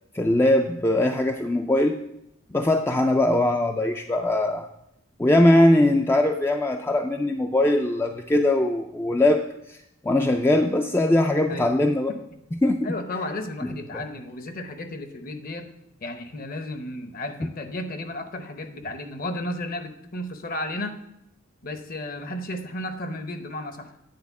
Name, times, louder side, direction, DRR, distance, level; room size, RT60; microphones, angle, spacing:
voice 1, 0.1-2.0 2.5-4.7 5.2-9.8 10.0-12.1 12.6-12.9 13.6-14.0, left 1 dB, 10° left, 4 dB, 0.3 m, -21 dB
voice 2, 12.8-15.7 16.0-21.0 21.6-23.9, left 1 dB, 45° left, 8 dB, 0.8 m, -33 dB
9.5 x 4.2 x 6.9 m, 0.80 s
head